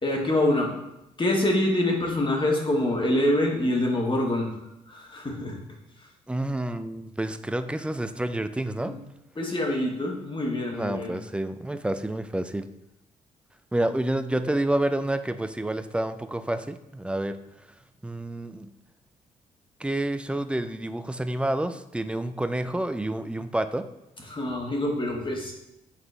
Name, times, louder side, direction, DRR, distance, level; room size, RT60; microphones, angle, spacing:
voice 1, 0.0-0.7 1.2-4.5 4.9-5.6 8.8-8.9 9.4-11.2 24.3-25.5, left 1 dB, 30° left, 0 dB, 1.7 m, -25 dB
voice 2, 6.3-9.0 10.7-12.7 13.7-17.4 18.0-18.7 19.8-23.9, right 1 dB, 5° right, 9 dB, 0.5 m, -29 dB
7.3 x 3.9 x 3.3 m, 0.87 s
hypercardioid pair, 50°, 17 cm